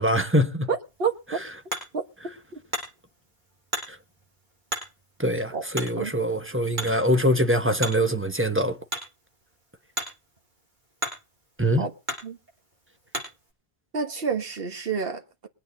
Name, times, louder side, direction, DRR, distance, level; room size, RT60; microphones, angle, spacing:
voice 1, 0.0-0.7 5.2-8.8 11.6-11.8, equal, 15° right, 1.1 m, -23 dB
voice 2, 0.7-1.4 1.9-2.6 5.5-5.6 6.0-6.1 11.7-11.9 12.2-12.4 13.9-15.5, right 5 dB, 65° right, 1.7 m, -29 dB
Hammer, 0.8-13.5, right 1 dB, 50° right, 5.8 m, -38 dB
21.5 x 8.9 x 4.0 m
omnidirectional pair, 1.0 m